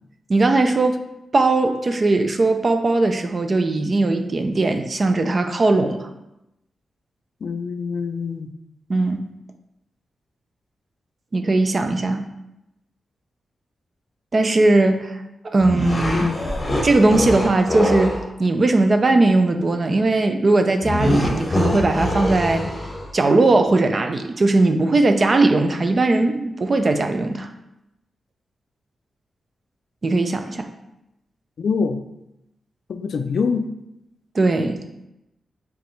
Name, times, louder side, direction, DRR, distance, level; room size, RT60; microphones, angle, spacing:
voice 1, 0.3-1.0 1.3-6.1 8.9-9.2 11.3-12.2 14.3-15.2 15.4-16.3 16.8-22.6 23.1-27.5 30.0-30.7 34.3-34.8, right 2 dB, 35° right, 7 dB, 0.4 m, -19 dB
voice 2, 7.4-8.5 16.1-16.4 31.6-32.0 32.9-33.7, left 5 dB, 60° left, 9 dB, 0.3 m, -24 dB
sound 1, 15.6-18.2 20.8-23.1, left 1 dB, 20° left, 1.1 m, -24 dB
4.9 x 3.5 x 3.1 m, 0.89 s
wide cardioid pair, 150°, 0 cm